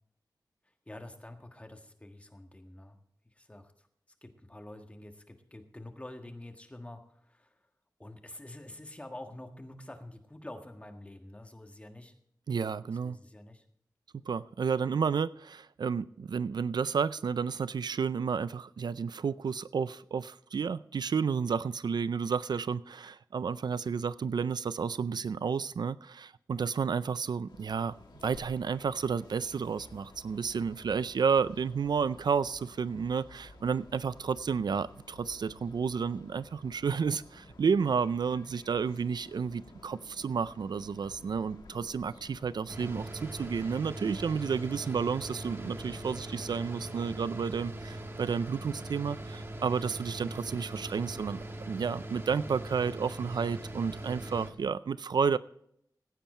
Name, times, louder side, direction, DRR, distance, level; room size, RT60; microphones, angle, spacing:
voice 1, 0.9-3.0 3.3-3.7 4.2-7.6 8.0-12.1 13.0-13.6, left 1 dB, 15° left, 5 dB, 1.6 m, -47 dB
voice 2, 12.5-13.2 14.3-27.9 28.2-51.4 51.7-55.4, right 6 dB, 70° right, 17 dB, 0.4 m, -31 dB
sound 1, 27.5-47.2, left 3 dB, 85° left, 2.1 m, -54 dB
sound 2, 42.7-54.5, right 1 dB, 30° right, 1.8 m, -41 dB
15.5 x 9.1 x 4.3 m, 0.70 s
wide cardioid pair, 85°, 7 cm